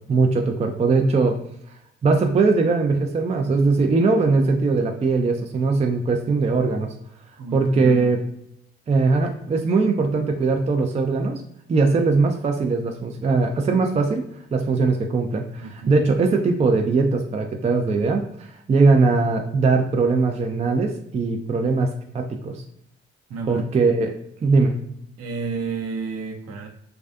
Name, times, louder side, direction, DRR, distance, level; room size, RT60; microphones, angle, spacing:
voice 1, 0.1-1.4 2.0-6.9 7.5-8.2 8.9-11.4 11.7-14.2 14.5-22.6 23.5-24.7, right 3 dB, 25° right, 4 dB, 0.4 m, -20 dB
voice 2, 7.4-8.1 15.6-15.9 23.3-23.6 25.2-26.7, right 4 dB, 55° right, 2 dB, 0.7 m, -31 dB
2.4 x 2.2 x 2.4 m, 0.76 s
hypercardioid pair, 45°, 29 cm